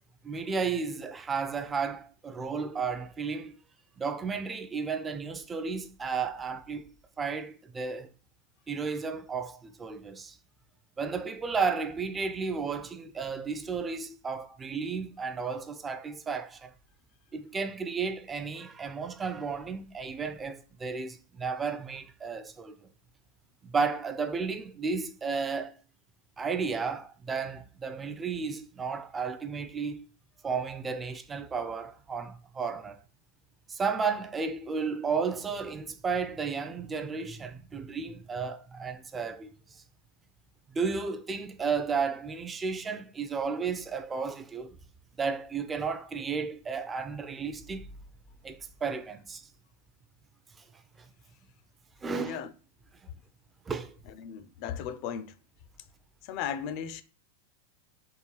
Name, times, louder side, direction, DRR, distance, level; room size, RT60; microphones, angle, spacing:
voice 1, 0.2-3.6 4.0-8.1 8.7-10.4 11.0-16.7 17.3-22.9 23.6-25.8 26.4-30.1 30.4-33.0 33.7-39.5 40.7-44.8 45.2-47.9 48.4-49.5 51.0-51.1 52.0-52.4 53.7-54.0, right 5 dB, 20° right, 0.4 m, -33 dB
voice 2, 52.2-52.5 54.2-55.3 56.2-57.0, left 8 dB, 50° left, 0.4 m, -36 dB
3.6 x 2.3 x 3.1 m
hypercardioid pair, 100°, 0 cm